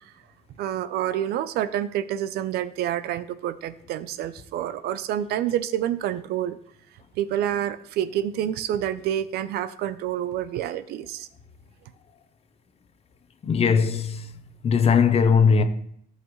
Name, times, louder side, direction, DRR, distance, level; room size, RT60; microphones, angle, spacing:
voice 1, 0.6-6.6 7.2-11.3, right 11 dB, 75° right, 0.6 m, -28 dB
voice 2, 13.4-14.3 14.6-15.6, left 6 dB, 40° left, 0.9 m, -19 dB
14.5 x 5.6 x 3.2 m
cardioid pair, 125°, 16 cm